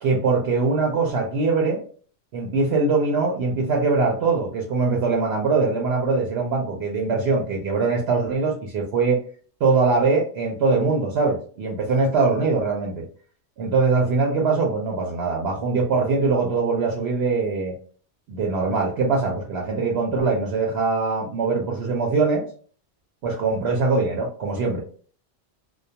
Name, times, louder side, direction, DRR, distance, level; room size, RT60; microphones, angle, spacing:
voice 1, 0.0-1.8 2.3-9.2 9.6-13.1 13.6-17.8 18.3-22.4 23.2-24.8, right 4 dB, 70° right, 0 dB, 0.8 m, -22 dB
2.2 x 2.1 x 2.7 m, 0.43 s
omnidirectional pair, 1.2 m